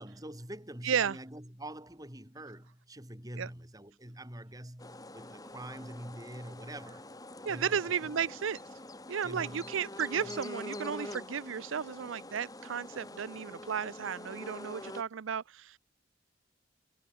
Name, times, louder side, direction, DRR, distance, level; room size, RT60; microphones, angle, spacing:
voice 1, 0.0-7.1 7.4-8.1 9.2-9.7 10.2-10.4, right 1 dB, 20° right, 3.7 m, -45 dB
voice 2, 0.8-1.2 3.4-3.5 7.4-8.6 9.1-15.8, right 7 dB, 85° right, 0.5 m, -34 dB
sound 1, 4.8-15.0, left 1 dB, 20° left, 3.1 m, -45 dB
head